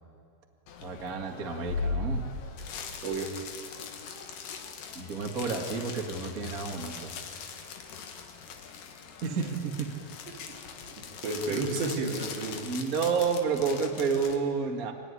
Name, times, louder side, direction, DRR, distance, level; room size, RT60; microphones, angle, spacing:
sound 1, 0.7-14.4, left 4 dB, 60° left, 2.6 m, -40 dB
voice 1, 0.8-2.2 4.9-7.2 9.2-9.9 11.4-11.6 12.6-14.9, right 5 dB, 85° right, 2 dB, 0.7 m, -30 dB
voice 2, 10.5-12.6, right 3 dB, 70° right, 0 dB, 4.9 m, -32 dB
25.0 x 19.0 x 9.8 m, 2.5 s
omnidirectional pair, 5.3 m